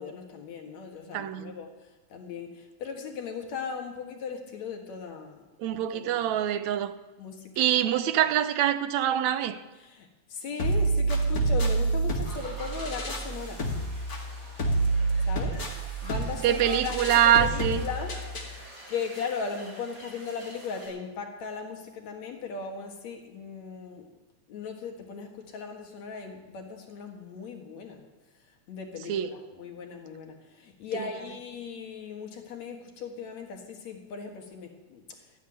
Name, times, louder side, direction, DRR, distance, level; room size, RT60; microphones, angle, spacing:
voice 1, 0.0-1.7 2.1-5.4 5.7-6.3 7.2-7.7 9.8-13.6 15.3-15.6 16.0-18.1 18.4-18.5 18.9-24.1 24.5-28.0 28.7-35.2, left 5 dB, 70° left, 2.9 m, -38 dB
voice 2, 1.1-1.6 5.6-6.9 7.6-9.6 16.4-17.9 29.1-29.3, right 10 dB, 75° right, 2.0 m, -24 dB
sound 1, 10.6-18.6, right 3 dB, 35° left, 2.3 m, -28 dB
sound 2, 12.2-20.9, equal, 25° right, 7.2 m, -47 dB
14.0 x 10.0 x 9.9 m
omnidirectional pair, 3.4 m